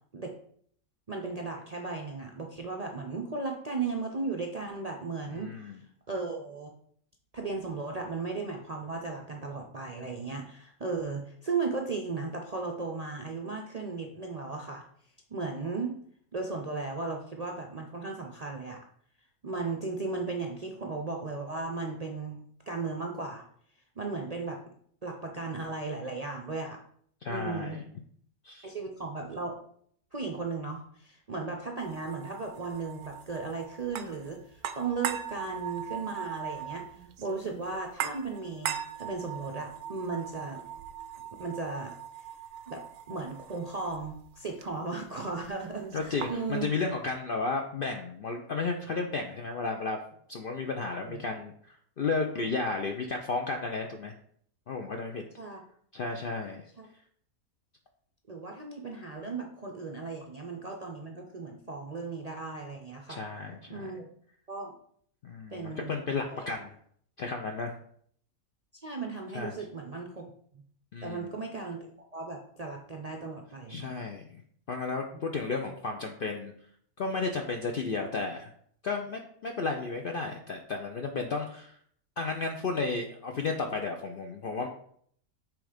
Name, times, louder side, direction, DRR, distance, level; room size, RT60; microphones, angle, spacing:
voice 1, 1.1-5.5 6.1-6.7 7.3-14.8 15.3-16.0 16.3-18.8 19.4-22.4 22.7-23.4 24.0-24.6 25.0-26.8 27.3-27.8 28.6-29.6 30.1-40.6 41.4-41.9 42.7-42.8 43.1-46.7 51.1-51.2 55.4-55.6 56.8-56.9 58.3-63.2 63.7-64.1 64.5-64.7 65.5-66.0 66.3-66.5 68.8-70.3 70.5-70.6 71.0-71.9 72.1-74.0, right 4 dB, 45° right, 1 dB, 0.5 m, -36 dB
voice 2, 5.3-5.8 27.2-27.8 28.4-28.7 45.9-50.0 50.3-54.1 54.7-55.2 55.9-56.6 63.1-63.9 65.2-66.8 67.2-67.7 69.3-69.5 70.9-71.3 73.7-74.4 74.7-76.5 77.0-78.5 78.8-81.8 82.2-84.7, left 4 dB, 60° left, 3 dB, 0.6 m, -33 dB
sound 1, 31.8-46.6, right 9 dB, 90° right, 1.1 m, -40 dB
6.1 x 3.5 x 4.9 m, 0.63 s
omnidirectional pair, 1.5 m